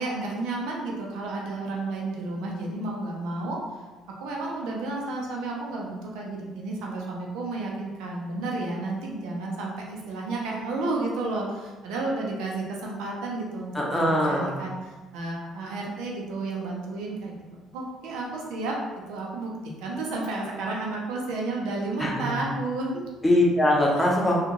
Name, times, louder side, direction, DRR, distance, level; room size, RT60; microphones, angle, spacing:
voice 1, 0.0-3.6 4.1-17.3 17.7-23.1 24.0-24.1, right 2 dB, 80° right, -2 dB, 0.6 m, -32 dB
voice 2, 13.7-14.5 22.0-22.3 23.2-24.4, left 1 dB, 10° left, -3 dB, 0.9 m, -22 dB
3.5 x 2.4 x 3.0 m, 1.2 s
supercardioid pair, 75°, 0 cm